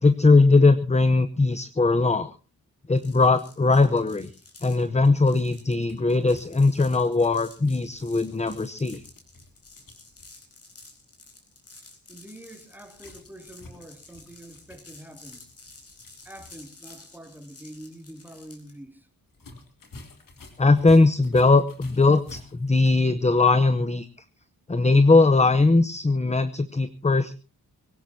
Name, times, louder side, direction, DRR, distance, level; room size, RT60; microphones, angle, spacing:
voice 1, 0.0-2.3 2.9-4.3 4.6-9.0 20.6-24.1 24.7-27.3, left 3 dB, 20° left, 0.8 m, -20 dB
sound 1, 2.9-18.8, left 3 dB, 40° left, 4.4 m, -51 dB
sound 2, 5.8-10.4 12.9-16.7 17.0-17.1 19.3-23.1, left 2 dB, 65° left, 3.1 m, -49 dB
voice 2, 12.1-15.4 16.2-19.1, right 1 dB, 5° right, 2.7 m, -45 dB
22.5 x 17.0 x 2.8 m
wide cardioid pair, 120°, 35 cm